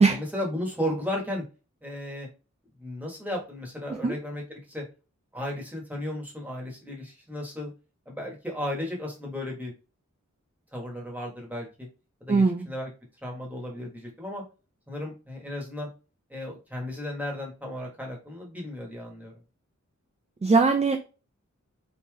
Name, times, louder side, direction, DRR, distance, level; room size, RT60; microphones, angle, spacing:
voice 1, 0.1-1.4 1.8-2.3 2.8-4.8 5.3-7.7 8.1-9.7 10.7-11.9 12.2-12.9 13.2-14.4 14.9-15.9 16.3-19.3, left 1 dB, 5° right, -2 dB, 1.2 m, -34 dB
voice 2, 12.3-12.7 20.4-21.0, right 4 dB, 25° right, 5 dB, 0.3 m, -20 dB
3.2 x 2.8 x 2.2 m, 0.32 s
wide cardioid pair, 55°, 30 cm